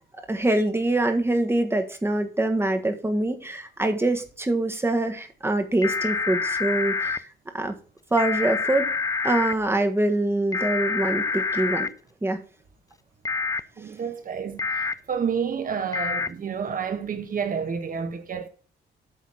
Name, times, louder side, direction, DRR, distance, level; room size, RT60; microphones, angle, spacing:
voice 1, 0.3-7.3 7.5-7.7 8.1-8.9 9.2-11.9 12.2-12.4, right 2 dB, 10° right, 1.4 m, -24 dB
sound 1, 5.8-7.2 8.2-9.5 10.5-11.9 13.2-13.6 14.6-14.9 15.9-16.3, left 4 dB, 20° left, 0.4 m, -26 dB
voice 2, 13.8-18.5, right 6 dB, 45° right, 1.5 m, -30 dB
8.2 x 4.1 x 6.4 m
cardioid pair, 105°, 19 cm